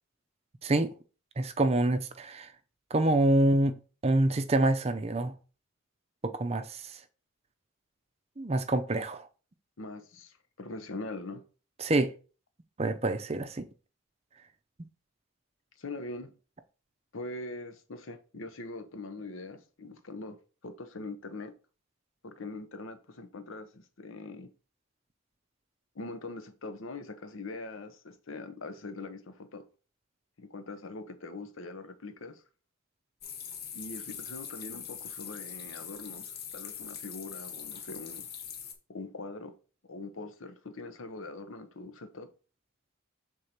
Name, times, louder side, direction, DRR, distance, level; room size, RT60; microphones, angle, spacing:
voice 1, 0.6-0.9 1.4-2.5 2.9-3.8 4.0-5.3 6.2-7.0 8.4-9.3 11.8-12.1 12.8-13.7, right 2 dB, 30° right, 0.5 m, -26 dB
voice 2, 9.8-11.4 15.8-16.3 17.1-21.5 22.2-24.5 25.9-29.6 30.4-32.4 33.7-38.3 38.9-39.5 39.9-42.3, left 2 dB, 75° left, 0.9 m, -42 dB
sound 1, 33.2-38.7, left 8 dB, 50° left, 1.1 m, -42 dB
6.6 x 3.7 x 4.4 m
head